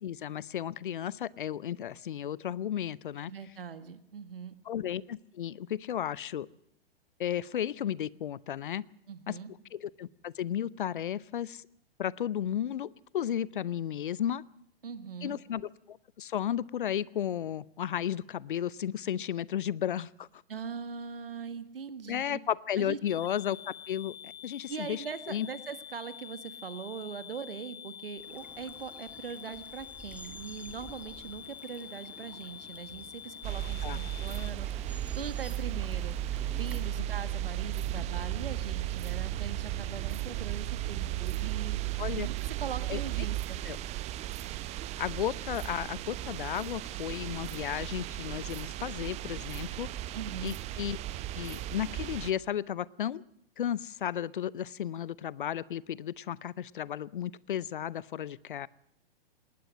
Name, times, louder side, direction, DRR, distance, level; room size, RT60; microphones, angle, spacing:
voice 1, 0.0-3.3 4.7-6.5 7.2-8.8 9.3-9.4 9.7-11.6 12.0-14.4 15.2-20.4 22.1-25.5 33.8-34.0 37.9-38.0 42.0-42.3 42.9-43.0 43.6-43.8 45.0-49.9 50.4-51.0 51.3-53.2 53.6-58.7, left 10 dB, 55° left, 22 dB, 0.7 m, -34 dB
voice 2, 3.2-4.5 9.1-9.5 14.8-15.4 20.5-22.4 22.8-23.0 24.7-34.8 35.2-43.6 50.1-50.6, right 6 dB, 70° right, 12 dB, 2.0 m, -41 dB
sound 1, 23.1-34.5, left 9 dB, 15° left, 0.8 m, -47 dB
Bird vocalization bird call bird song / Stream, 28.2-36.8, right 2 dB, 5° right, 1.6 m, -51 dB
sound 2, 33.4-52.3, right 14 dB, 20° right, 0.9 m, -35 dB
19.5 x 19.0 x 7.7 m, 0.72 s
figure-of-eight pair, 110°, 30 cm